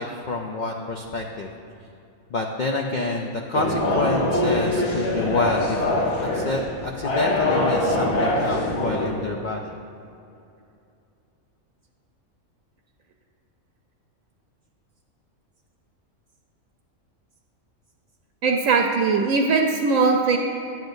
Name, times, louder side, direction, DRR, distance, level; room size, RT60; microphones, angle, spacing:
voice 1, 0.0-1.5 2.3-9.7, left 2 dB, 75° left, 1 dB, 0.4 m, -28 dB
sound 1, 3.5-9.1, left 1 dB, 60° left, 1.3 m, -23 dB
voice 2, 18.4-20.4, right 4 dB, 80° right, 2 dB, 1.0 m, -20 dB
10.5 x 7.9 x 2.6 m, 2.6 s
omnidirectional pair, 1.4 m